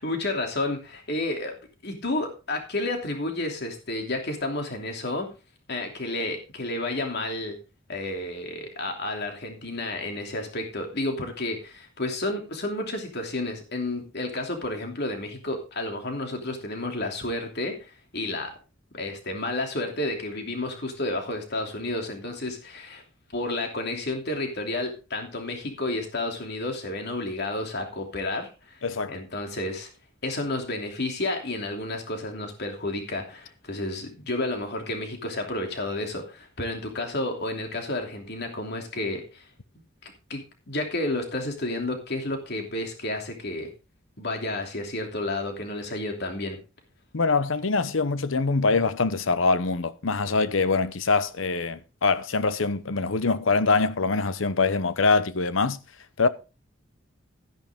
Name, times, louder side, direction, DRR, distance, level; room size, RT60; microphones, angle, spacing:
voice 1, 0.0-1.6 1.8-5.3 5.7-7.6 7.9-18.5 18.9-23.0 23.3-29.9 30.2-39.4 40.0-43.7 44.2-46.6, left 2 dB, 55° left, 2.9 m, -31 dB
voice 2, 28.8-29.2 47.1-55.8 56.2-56.3, left 4 dB, 75° left, 0.9 m, -24 dB
13.0 x 10.5 x 3.6 m
head